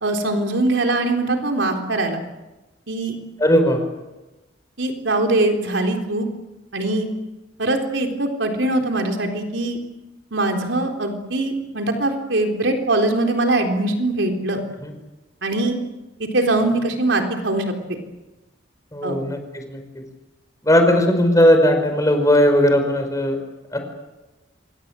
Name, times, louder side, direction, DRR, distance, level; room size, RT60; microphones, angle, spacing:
voice 1, 0.0-2.2 2.9-3.2 4.8-6.3 6.7-7.1 7.6-9.8 10.3-14.6 15.4-15.8 16.2-18.0 19.0-19.2, right 2 dB, 85° right, 3 dB, 3.8 m, -22 dB
voice 2, 3.4-3.8 14.8-14.9 18.9-19.8 20.6-23.4 23.7-23.8, equal, 20° left, 6 dB, 5.3 m, -17 dB
27.0 x 23.5 x 7.7 m, 1.1 s
head